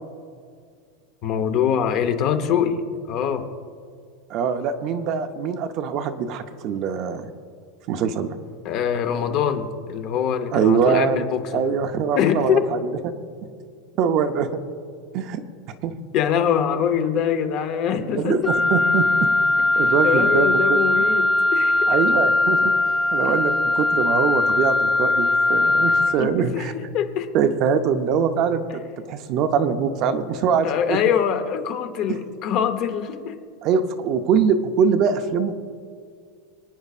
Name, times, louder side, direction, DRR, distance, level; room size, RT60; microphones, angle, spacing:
voice 1, 1.2-2.8 3.1-3.5 8.6-11.6 12.1-12.6 16.1-18.4 20.0-21.9 23.2-23.4 26.2-26.7 26.9-27.3 28.7-28.8 30.6-33.3, left 8 dB, 35° left, 8 dB, 0.9 m, -23 dB
voice 2, 4.3-7.3 7.9-8.4 10.5-11.3 11.5-13.1 14.0-14.6 15.1-15.4 15.8-15.9 18.1-19.3 19.8-20.8 21.9-22.7 23.1-26.7 27.3-28.8 29.1-31.0 32.1-32.2 33.6-35.5, right 6 dB, 35° right, 8 dB, 0.6 m, -23 dB
Wind instrument woodwind instrument, 18.5-26.2, left 2 dB, 5° left, 0.4 m, -20 dB
24.5 x 9.2 x 2.5 m, 2.1 s
supercardioid pair, 175°, 0 cm